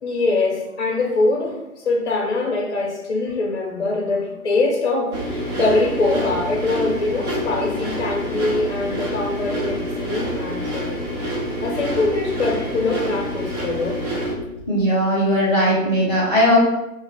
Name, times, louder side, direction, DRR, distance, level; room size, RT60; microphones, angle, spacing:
voice 1, 0.0-11.0 11.6-14.0, left 3 dB, 50° left, -1 dB, 0.5 m, -23 dB
sound 1, 5.1-14.4, equal, 70° right, 1.1 m, -27 dB
voice 2, 14.7-16.6, equal, 5° left, -13 dB, 0.7 m, -18 dB
2.6 x 2.0 x 3.8 m, 0.91 s
figure-of-eight pair, 150°, 46 cm